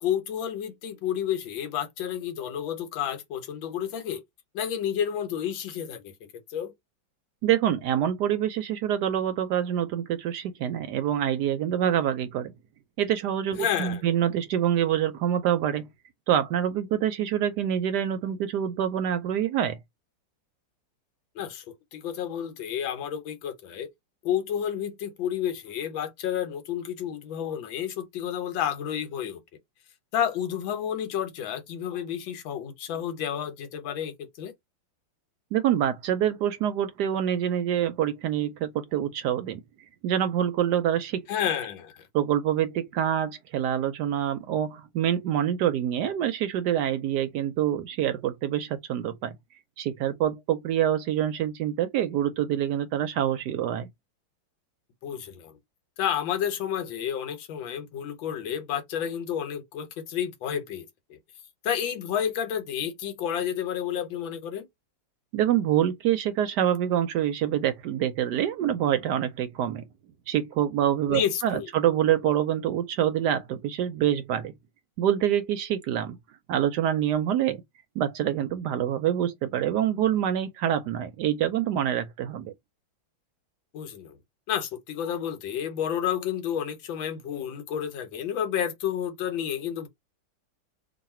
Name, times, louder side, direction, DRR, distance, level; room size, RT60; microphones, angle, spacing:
voice 1, 0.0-4.2 4.5-6.1 6.5-6.7 13.6-14.0 21.4-21.6 21.9-23.9 24.2-29.4 30.1-34.5 41.3-41.9 55.0-55.5 56.0-61.2 61.6-64.7 71.1-71.7 83.7-84.2 84.5-89.9, left 9 dB, 80° left, 1.6 m, -30 dB
voice 2, 7.4-12.5 13.0-15.9 16.3-19.8 35.5-39.6 40.0-41.3 42.1-49.3 49.8-53.9 65.3-69.8 70.3-74.5 75.0-76.2 76.5-77.6 78.0-82.5, right 10 dB, 75° right, 1.0 m, -26 dB
3.1 x 2.6 x 4.2 m
omnidirectional pair, 2.1 m